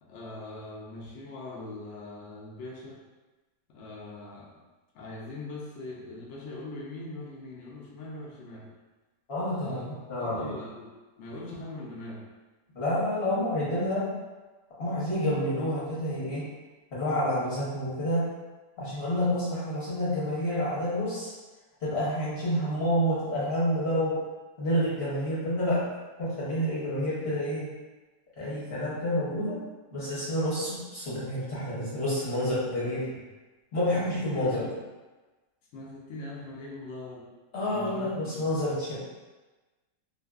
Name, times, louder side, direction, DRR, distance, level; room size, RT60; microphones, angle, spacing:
voice 1, 0.0-3.0 3.7-4.6 4.9-8.7 9.5-9.9 10.2-12.3 32.8-33.2 33.9-34.8 35.7-37.3 37.7-38.5, left 2 dB, 75° left, -4 dB, 0.6 m, -41 dB
voice 2, 9.3-10.5 12.7-14.1 14.8-16.5 16.9-18.3 18.8-21.3 21.8-24.1 24.6-25.8 26.2-27.7 28.4-29.6 29.9-33.1 33.7-34.7 37.5-39.0, equal, 45° left, -9 dB, 0.9 m, -29 dB
2.5 x 2.5 x 2.3 m, 1.2 s
omnidirectional pair, 1.8 m